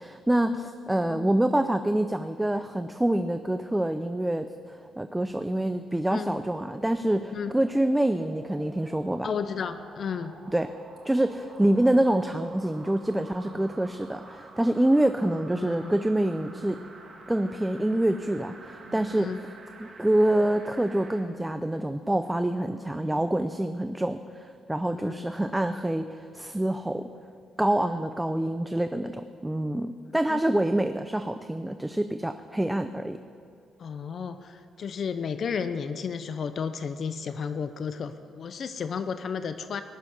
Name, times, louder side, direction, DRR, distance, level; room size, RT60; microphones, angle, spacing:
voice 1, 0.0-9.3 10.5-10.7 11.0-16.8 17.3-19.3 19.8-27.1 27.6-33.2, right 1 dB, 10° right, 9 dB, 0.6 m, -26 dB
sound 1, 6.3-21.3 21.7-21.8, right 3 dB, 40° right, 2.3 m, -49 dB
voice 2, 9.2-10.3 15.5-15.9 19.1-19.4 24.9-25.3 27.8-28.0 30.3-30.6 33.8-39.8, left 6 dB, 55° left, 10 dB, 0.7 m, -33 dB
sound 2, 9.9-10.5 11.9-13.9 14.9-16.9 17.6-19.4 20.3-21.7 22.1-23.4, equal, 10° left, 4.8 m, -53 dB
17.5 x 6.9 x 9.9 m, 2.3 s
cardioid pair, 90°, 0 cm